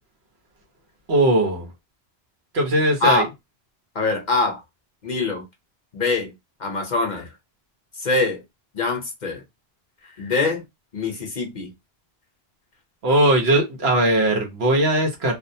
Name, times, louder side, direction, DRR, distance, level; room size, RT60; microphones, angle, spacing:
voice 1, 1.1-1.7 2.5-3.3 13.0-15.4, right 1 dB, 75° right, 1.1 m, -19 dB
voice 2, 3.9-4.6 5.0-5.4 5.9-6.3 6.6-7.3 8.0-8.4 8.7-9.4 10.2-10.6 10.9-11.7, left 3 dB, 50° left, 0.8 m, -23 dB
2.6 x 2.0 x 2.6 m
omnidirectional pair, 1.1 m